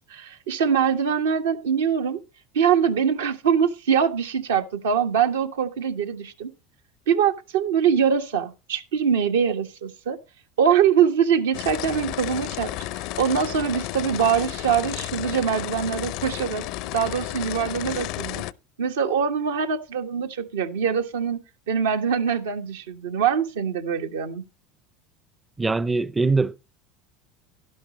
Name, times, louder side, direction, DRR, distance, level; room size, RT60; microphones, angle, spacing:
voice 1, 0.1-2.2 2.5-6.5 7.1-10.2 10.6-16.6 16.9-18.4 18.8-21.4 21.7-24.4, right 7 dB, 85° right, 1.4 m, -23 dB
sound 1, 11.5-18.5, left 16 dB, 60° left, 0.6 m, -32 dB
voice 2, 25.6-26.6, right 3 dB, 15° right, 0.5 m, -22 dB
11.5 x 11.5 x 3.1 m
hypercardioid pair, 90°, 0 cm